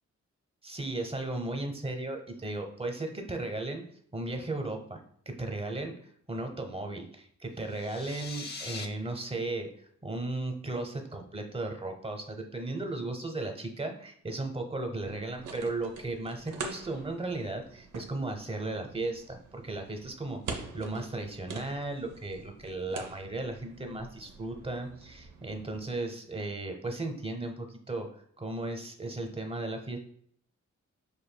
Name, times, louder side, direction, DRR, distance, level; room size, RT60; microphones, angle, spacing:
voice 1, 0.6-3.8 4.1-5.0 5.3-30.0, right 2 dB, 20° right, 5 dB, 0.8 m, -36 dB
sound 1, 7.6-8.9, left 4 dB, 35° left, 0.5 m, -41 dB
sound 2, 14.9-25.9, right 4 dB, 85° right, 0.6 m, -45 dB
6.3 x 2.5 x 2.2 m, 0.63 s
cardioid pair, 50°, 30 cm